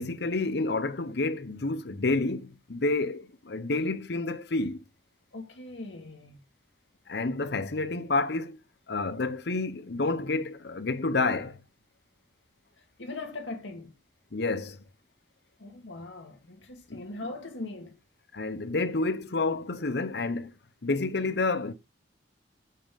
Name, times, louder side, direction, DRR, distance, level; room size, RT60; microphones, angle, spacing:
voice 1, 0.0-4.8 7.1-8.6 8.9-11.6 14.3-14.8 16.9-17.0 18.3-20.5 20.8-21.7, left 3 dB, 65° left, 0.8 m, -29 dB
voice 2, 5.3-6.4 12.8-13.9 15.6-18.0, left 2 dB, 85° left, 2.1 m, -40 dB
8.5 x 5.5 x 5.3 m
head